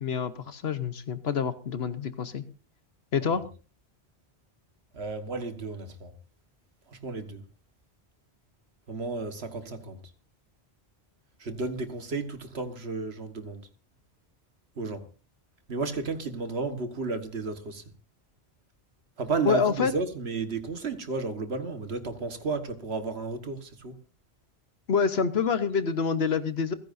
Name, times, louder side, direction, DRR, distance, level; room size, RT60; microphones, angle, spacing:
voice 1, 0.0-2.4 3.1-3.4 19.4-19.9 24.9-26.7, left 6 dB, 75° left, 1.3 m, -27 dB
voice 2, 4.9-6.1 6.9-7.4 8.9-10.0 11.4-13.7 14.8-15.1 15.7-17.8 19.2-24.0, right 4 dB, 75° right, 1.8 m, -33 dB
28.0 x 10.5 x 2.7 m
omnidirectional pair, 1.1 m